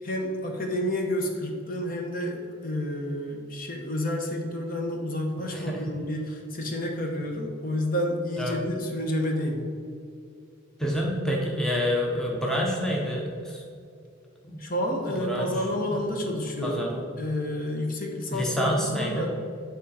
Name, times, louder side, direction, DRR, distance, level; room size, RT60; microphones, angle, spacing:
voice 1, 0.0-9.7 14.6-19.3, left 1 dB, 40° left, 2 dB, 0.9 m, -30 dB
voice 2, 10.8-13.6 14.5-14.6 15.3-15.5 16.6-17.0 18.3-19.3, equal, 5° left, -2 dB, 0.8 m, -27 dB
8.2 x 3.8 x 5.6 m, 2.3 s
head